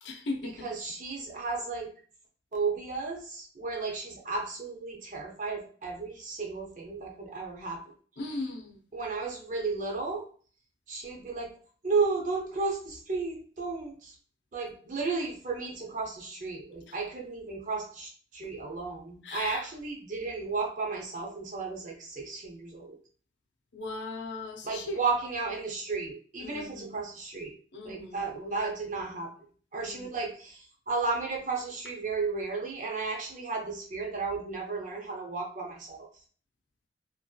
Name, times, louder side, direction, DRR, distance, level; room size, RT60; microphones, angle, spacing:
voice 1, 0.0-0.7 8.2-8.8 16.9-17.0 19.2-19.7 23.7-25.0 26.4-27.0 27.7-28.3 29.8-30.1, left 3 dB, 90° left, 0.6 m, -38 dB
voice 2, 0.6-1.9 2.5-7.8 8.9-10.2 10.9-11.5 11.8-14.1 14.5-23.0 24.6-27.5 27.8-29.3 29.7-30.6 30.9-36.1, right 4 dB, 45° right, 0.6 m, -33 dB
2.6 x 2.6 x 2.3 m
head